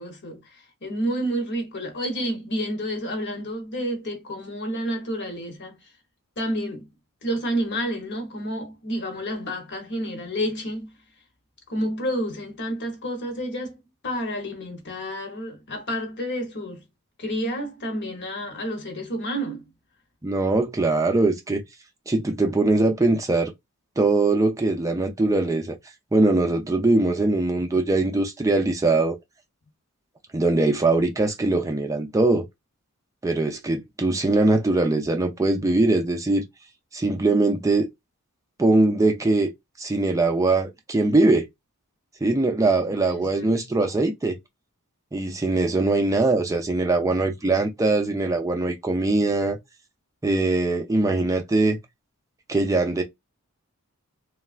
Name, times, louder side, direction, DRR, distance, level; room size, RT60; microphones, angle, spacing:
voice 1, 0.0-5.8 6.4-6.9 7.2-10.9 11.7-13.8 14.0-16.8 17.2-19.6 42.9-43.5, equal, 50° left, 1.0 m, -30 dB
voice 2, 20.2-21.6 22.1-23.5 24.0-25.8 26.1-29.2 30.3-32.4 33.2-36.4 36.9-37.9 38.6-39.5 39.8-41.5 42.2-44.4 45.1-49.6 50.2-51.8 52.5-53.0, right 2 dB, 15° right, 0.4 m, -21 dB
3.2 x 2.3 x 2.5 m
head